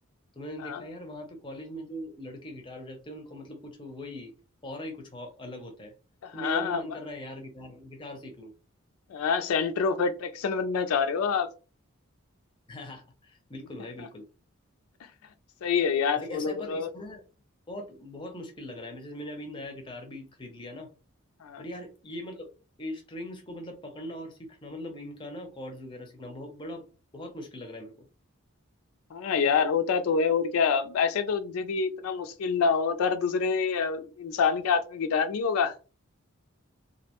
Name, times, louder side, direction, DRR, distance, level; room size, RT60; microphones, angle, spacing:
voice 1, 0.3-4.3 4.6-5.9 6.3-8.5 12.7-14.2 16.2-17.3 17.7-20.9 21.6-22.5 22.8-26.9 27.1-27.9, left 1 dB, 20° left, 0.5 m, -40 dB
voice 2, 6.2-7.0 9.1-11.5 15.6-16.9 21.4-21.6 29.1-35.7, left 5 dB, 80° left, 0.3 m, -26 dB
2.5 x 2.1 x 2.8 m
head